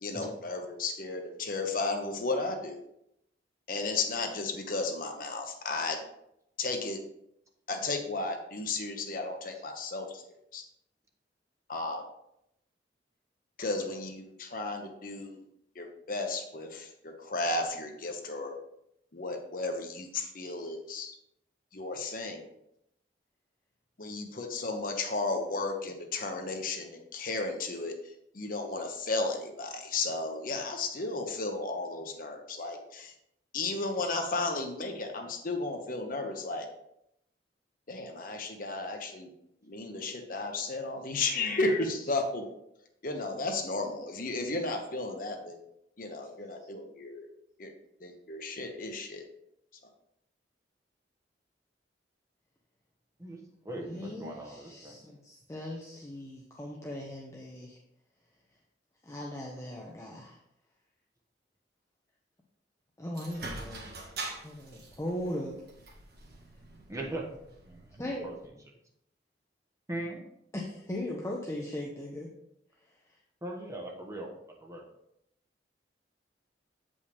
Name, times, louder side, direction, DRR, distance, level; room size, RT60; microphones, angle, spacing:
voice 1, 0.0-2.8 3.7-6.0 6.6-7.0 7.7-10.2 10.5-10.6 11.7-12.0 13.6-15.4 15.8-18.5 19.1-21.1 21.7-22.4 24.0-27.9 28.3-33.1 33.5-36.7 37.9-39.3 39.6-42.4 43.0-45.6 46.0-47.3 47.6-47.7 48.0-49.2, left 3 dB, 50° left, 4 dB, 1.0 m, -34 dB
voice 2, 53.2-55.0 66.9-67.3 67.6-68.6 69.9-70.2 73.4-74.3 74.6-74.8, right 1 dB, 20° right, 0 dB, 1.2 m, -40 dB
voice 3, 53.8-57.8 59.0-60.4 63.0-63.9 64.4-65.5 68.0-68.3 70.5-72.3, left 1 dB, 15° left, -2 dB, 0.8 m, -38 dB
sound 1, 63.1-68.5, right 3 dB, 60° right, 1.7 m, -44 dB
8.2 x 5.4 x 3.5 m, 0.79 s
head